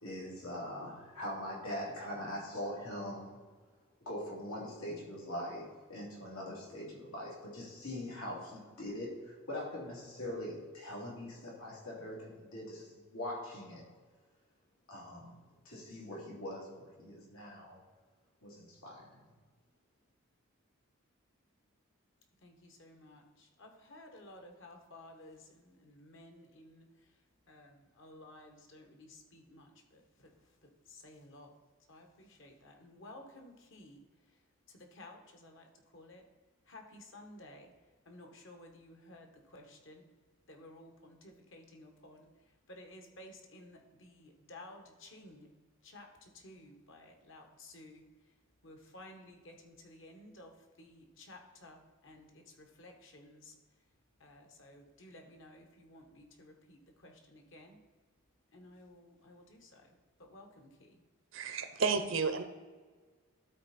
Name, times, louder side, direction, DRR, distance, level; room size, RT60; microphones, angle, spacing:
voice 1, 0.0-3.4 4.0-13.8 14.9-15.3 15.6-17.8 18.4-19.2, left 1 dB, 90° left, -4 dB, 2.8 m, -42 dB
voice 2, 22.4-31.5 31.9-36.2 36.6-37.7 38.0-40.0 40.5-45.5 45.8-48.4 48.6-53.6 54.2-57.8 58.5-61.0, left 1 dB, 60° left, 3 dB, 1.3 m, -55 dB
voice 3, 61.3-62.4, right 5 dB, 65° right, 9 dB, 0.7 m, -31 dB
12.5 x 4.2 x 4.2 m, 1.4 s
head